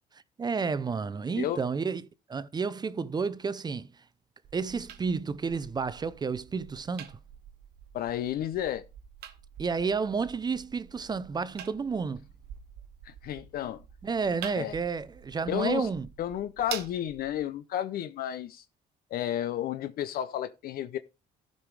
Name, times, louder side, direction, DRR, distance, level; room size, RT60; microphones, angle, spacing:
voice 1, 0.4-3.9 4.5-7.2 9.6-12.2 14.0-16.1, right 5 dB, 25° right, 0.5 m, -31 dB
sound 1, 4.4-17.4, right 10 dB, 75° right, 1.2 m, -47 dB
voice 2, 7.9-8.8 13.0-13.8 14.6-14.7 15.5-15.9 16.2-18.6 19.1-21.0, left 11 dB, 65° left, 0.6 m, -32 dB
12.5 x 5.4 x 4.7 m
cardioid pair, 110°, 17 cm